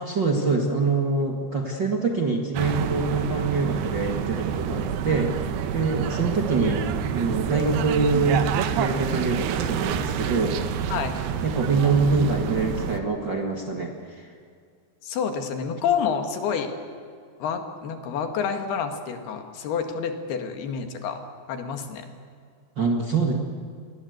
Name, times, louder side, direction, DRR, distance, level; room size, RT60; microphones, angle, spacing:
voice 1, 0.0-5.3 5.7-8.5 8.8-10.6 11.4-14.3 22.8-23.3, right 4 dB, 40° right, 1 dB, 1.8 m, -25 dB
sound 1, 2.6-13.0, right 8 dB, 85° right, 3.2 m, -28 dB
voice 2, 15.0-16.7 17.4-21.2 21.5-22.1, left 7 dB, 80° left, 5 dB, 4.0 m, -28 dB
29.0 x 21.5 x 8.1 m, 2.2 s
omnidirectional pair, 4.5 m